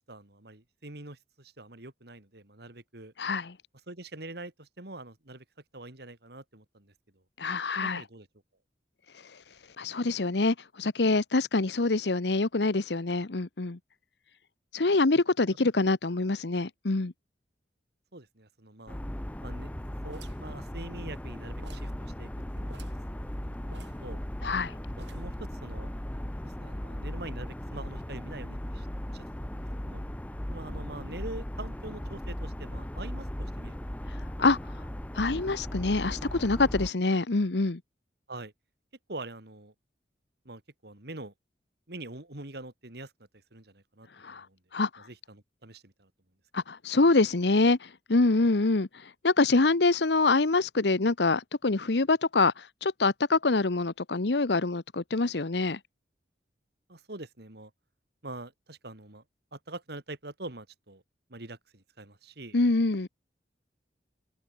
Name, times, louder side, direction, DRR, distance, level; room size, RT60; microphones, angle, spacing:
voice 1, 0.0-3.1 3.9-5.4 5.7-6.9 7.8-8.3 18.1-19.0 19.4-19.7 20.0-22.3 22.6-22.8 23.4-23.5 24.0-24.2 25.1-25.9 26.4-30.0 30.5-33.8 34.0-34.2 38.3-38.5 39.1-39.7 40.4-41.3 41.9-43.1 43.5-44.6 45.0-46.1 56.9-57.7 58.2-59.2 59.5-61.0 61.3-62.6, right 2 dB, 65° right, 2.9 m, -44 dB
voice 2, 3.2-3.5 7.4-8.0 9.8-13.8 14.7-17.1 24.4-24.7 34.4-34.6 35.1-37.8 44.2-44.5 44.7-45.0 46.5-55.8 62.5-63.1, left 3 dB, 70° left, 1.0 m, -25 dB
sound 1, 18.9-36.9, equal, 10° left, 0.6 m, -37 dB
sound 2, 20.1-21.3 21.6-22.0 22.3-22.4 22.7-23.1 23.7-24.6 25.0-25.4, right 4 dB, 80° right, 7.8 m, -53 dB
head